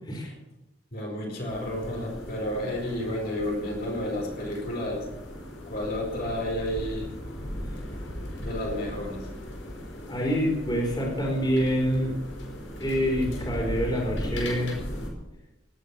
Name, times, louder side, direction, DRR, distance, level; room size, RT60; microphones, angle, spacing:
voice 1, 0.9-5.1 5.7-7.1 8.4-9.3, left 1 dB, 55° left, -1 dB, 4.8 m, -31 dB
sound 1, 1.5-15.1, equal, 85° left, 5.1 m, -37 dB
voice 2, 10.1-12.1 12.8-14.7, equal, 25° left, -1 dB, 4.6 m, -26 dB
18.5 x 10.0 x 7.1 m, 0.97 s
head